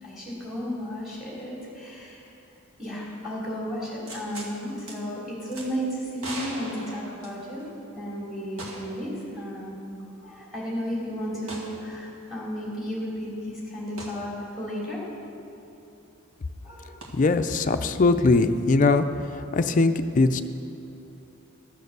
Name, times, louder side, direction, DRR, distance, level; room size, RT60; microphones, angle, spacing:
voice 1, 0.0-2.3 2.8-7.7 8.0-9.8 10.2-15.0 16.6-17.0, equal, ahead, -5 dB, 3.0 m, -33 dB
sound 1, 4.1-4.5 4.9-5.0 5.5-5.7 6.2-7.7 8.6-9.0 9.3-9.4 11.5-11.7 14.0-14.2 17.0-17.1, right 2 dB, 90° right, 1.8 m, -38 dB
voice 2, 17.1-19.1 19.3-20.4, left 3 dB, 35° left, 8 dB, 0.4 m, -21 dB
12.5 x 6.8 x 6.6 m, 2.9 s
head